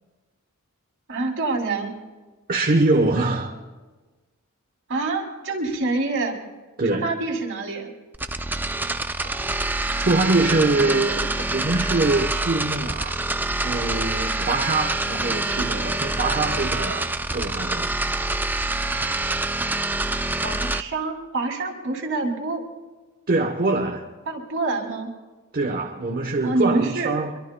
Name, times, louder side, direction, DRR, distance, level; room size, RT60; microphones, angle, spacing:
voice 1, 1.1-1.9 4.9-6.4 6.8-7.9 20.4-22.6 24.3-25.1 26.4-27.1, right 3 dB, 60° right, 2.8 m, -26 dB
voice 2, 2.5-3.5 6.8-7.1 10.0-13.2 13.6-17.9 23.3-24.1 25.5-27.3, right 2 dB, 45° right, 0.9 m, -23 dB
sound 1, 8.1-20.8, right 2 dB, 10° right, 0.4 m, -26 dB
25.5 x 23.5 x 2.2 m
head